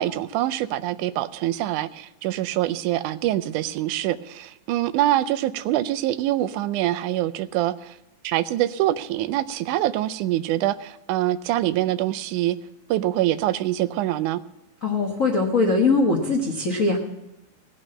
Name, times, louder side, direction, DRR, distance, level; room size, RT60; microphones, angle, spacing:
voice 1, 0.0-8.0 8.2-12.6 12.9-14.4, right 14 dB, 90° right, 12 dB, 2.1 m, -25 dB
voice 2, 14.8-17.0, left 3 dB, 60° left, -1 dB, 0.8 m, -21 dB
17.5 x 6.2 x 7.6 m, 0.93 s
omnidirectional pair, 3.4 m